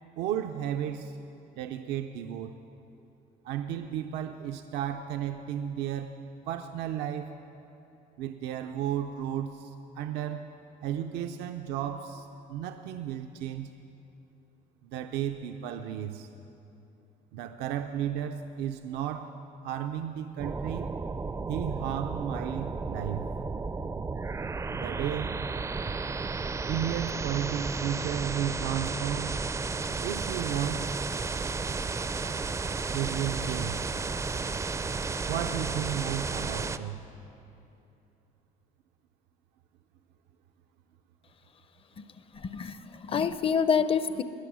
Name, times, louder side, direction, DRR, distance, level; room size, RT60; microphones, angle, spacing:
voice 1, 0.2-1.2 1.6-2.6 3.4-6.2 6.5-7.3 8.2-10.5 10.8-13.7 14.8-16.3 17.3-19.3 19.6-20.9 21.5-23.3 24.7-25.4 26.7-29.4 30.0-30.8 32.9-33.8 35.3-37.0, right 10 dB, 90° right, 6 dB, 0.5 m, -33 dB
sound 1, 20.4-36.8, right 4 dB, 15° right, 0.4 m, -33 dB
voice 2, 42.3-44.2, left 6 dB, 35° left, 13 dB, 0.5 m, -27 dB
20.5 x 7.2 x 6.2 m, 2.8 s
cardioid pair, 110°, 17 cm